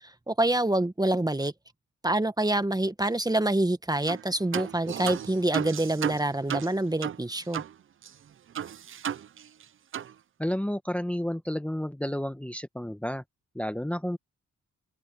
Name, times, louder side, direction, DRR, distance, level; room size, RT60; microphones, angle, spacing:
voice 1, 0.3-1.5 2.0-7.6, right 1 dB, 15° right, 1.3 m, -26 dB
sound 1, 4.1-4.2 4.5-7.7 8.0-8.1 8.5-9.6 9.9-10.1, right 9 dB, 45° right, 0.5 m, -34 dB
voice 2, 10.4-13.2 13.5-14.2, equal, 5° left, 1.2 m, -31 dB
open air
cardioid pair, 65°, 30 cm